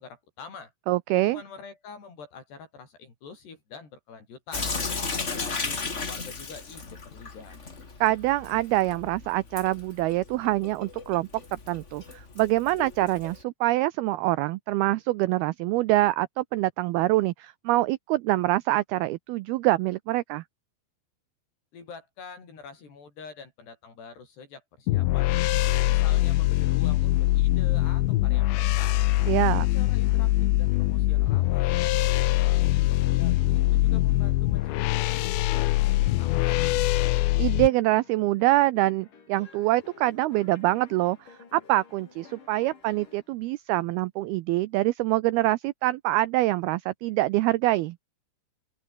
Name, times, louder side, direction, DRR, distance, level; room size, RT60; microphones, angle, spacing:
voice 1, 0.0-0.7 1.1-4.7 5.2-7.6 21.7-25.4 25.9-29.0 29.5-36.6, left 5 dB, 65° left, 8.4 m, -46 dB
voice 2, 0.9-1.4 8.0-20.4 29.3-29.7 37.4-41.2 41.5-48.0, right 18 dB, 85° right, 2.2 m, -25 dB
Sink (filling or washing) / Drip, 4.5-13.4, left 4 dB, 30° left, 1.2 m, -35 dB
sound 1, 24.9-37.7, left 17 dB, 85° left, 3.2 m, -23 dB
sound 2, 27.8-43.3, left 5 dB, 45° left, 5.6 m, -53 dB
open air
omnidirectional pair, 5.2 m